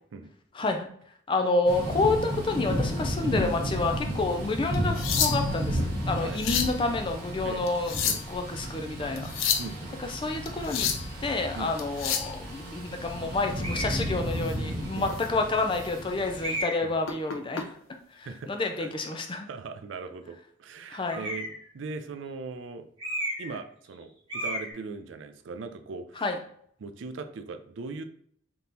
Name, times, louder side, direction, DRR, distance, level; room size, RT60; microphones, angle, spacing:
voice 1, 0.5-0.9 1.3-8.0 8.3-9.3 10.0-10.9 11.2-17.7 18.2-19.5 20.9-21.3 26.2-26.4, left 3 dB, 25° left, 5 dB, 0.4 m, -29 dB
Thunder / Rain, 1.7-16.6, equal, 50° right, 1.4 m, -33 dB
sound 1, 4.7-5.6 6.2-6.8 7.7-8.4 9.2-9.7 10.5-11.1 11.8-12.3 14.4-14.5 15.1-15.3 15.7-15.9 17.1-17.6 18.7-18.9, left 8 dB, 85° left, 0.5 m, -29 dB
voice 2, 9.6-10.0 11.5-11.7 15.0-15.2 16.8-16.9 18.3-18.5 18.8-18.9 19.4-22.9 23.4-26.2 26.8-28.0, right 4 dB, 70° right, 8 dB, 0.4 m, -39 dB
sound 2, 13.6-14.0 14.8-14.9 16.4-17.0 21.1-21.7 23.0-23.6 23.8-24.0 24.3-24.7, equal, 25° right, 1.6 m, -33 dB
3.6 x 2.9 x 3.9 m, 0.63 s
head